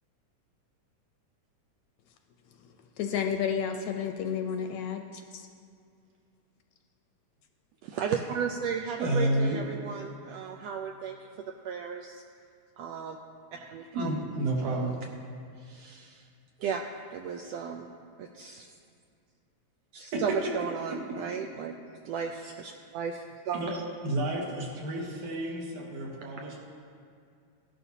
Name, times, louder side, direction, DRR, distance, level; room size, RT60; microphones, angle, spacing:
voice 1, 3.0-5.5, left 7 dB, 80° left, 5 dB, 1.8 m, -31 dB
voice 2, 7.8-11.3 11.6-12.2 12.8-13.2 13.7-14.2 14.6-15.0 15.6-16.3 16.6-16.8 17.1-17.9 18.2-18.7 19.9-21.7 22.0-23.8, right 7 dB, 85° right, 3 dB, 1.5 m, -35 dB
voice 3, 9.0-9.6 13.9-14.9 20.1-20.2 23.5-23.8 24.0-26.6, right 1 dB, 70° right, -2 dB, 3.0 m, -30 dB
16.5 x 11.5 x 2.7 m, 2.3 s
omnidirectional pair, 3.6 m